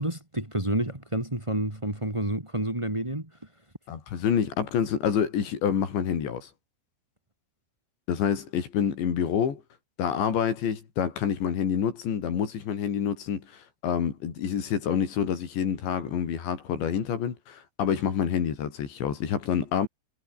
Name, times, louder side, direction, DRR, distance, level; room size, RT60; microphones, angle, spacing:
voice 1, 0.0-3.3, right 1 dB, 15° right, 1.0 m, -29 dB
voice 2, 3.9-6.5 8.1-9.6 10.0-19.9, left 8 dB, 70° left, 5.8 m, -27 dB
omnidirectional pair, 5.4 m